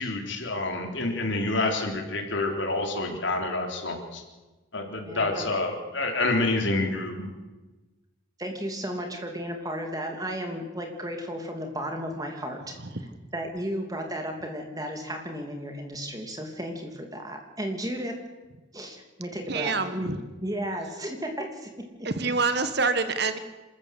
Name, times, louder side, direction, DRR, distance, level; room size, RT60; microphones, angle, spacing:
voice 1, 0.0-4.2 4.7-7.3, left 2 dB, 60° left, 3 dB, 3.7 m, -28 dB
voice 2, 5.0-5.5 8.4-12.7 13.3-18.2 18.7-20.2 20.4-22.1, equal, 15° right, 4 dB, 2.9 m, -34 dB
voice 3, 19.5-20.2 22.0-23.4, right 4 dB, 50° right, 10 dB, 1.5 m, -26 dB
26.5 x 14.0 x 8.3 m, 1.2 s
head